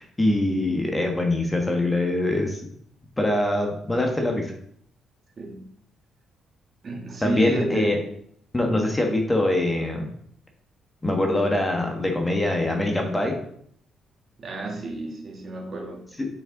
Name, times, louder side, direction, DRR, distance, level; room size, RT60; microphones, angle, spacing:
voice 1, 0.0-2.6 3.2-4.5 7.2-8.0 8.5-10.1 11.0-13.4 16.2-16.3, left 1 dB, 15° left, 2 dB, 1.2 m, -23 dB
voice 2, 6.8-8.1 14.4-16.0, right 2 dB, 45° right, 1 dB, 1.5 m, -31 dB
5.5 x 4.5 x 3.8 m, 0.64 s
cardioid pair, 90°, 0 cm